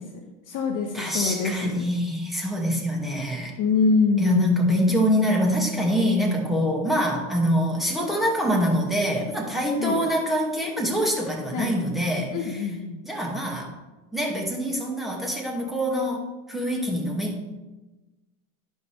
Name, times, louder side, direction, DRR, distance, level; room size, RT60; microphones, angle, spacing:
voice 1, 0.0-1.8 3.6-4.6 9.8-10.0 11.5-11.7 12.3-13.0, left 4 dB, 45° left, 3 dB, 1.1 m, -25 dB
voice 2, 0.9-3.6 4.2-12.7 13.1-13.7 14.1-17.5, equal, ahead, -2 dB, 2.2 m, -25 dB
11.5 x 5.5 x 3.4 m, 1.1 s
supercardioid pair, 105°, 44 cm